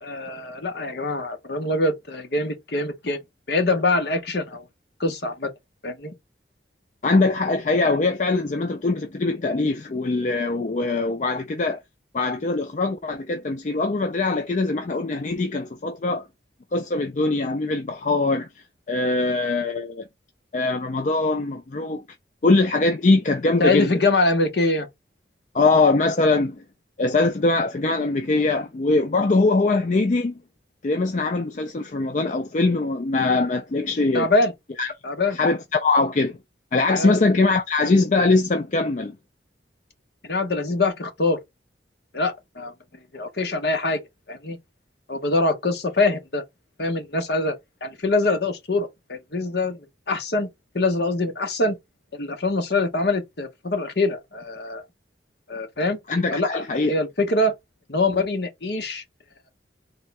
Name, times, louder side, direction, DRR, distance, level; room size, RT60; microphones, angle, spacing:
voice 1, 0.0-3.2 3.5-4.6 5.0-5.5 5.8-6.1 23.6-24.9 34.1-34.5 35.0-35.4 37.0-37.2 40.2-41.4 42.1-42.7 43.1-44.0 44.3-44.6 45.1-46.4 46.8-47.6 47.8-50.5 50.7-51.8 52.1-54.8 55.5-56.0 56.3-57.5 57.9-59.0, left 2 dB, 60° left, 1.1 m, -24 dB
voice 2, 7.0-11.8 12.1-16.3 16.7-18.5 18.9-20.0 20.5-22.0 22.4-23.9 25.5-26.6 27.0-30.4 30.8-34.3 34.8-34.9 35.3-36.4 36.7-39.1 56.1-56.9, left 3 dB, 40° left, 0.4 m, -22 dB
3.7 x 2.3 x 4.1 m
head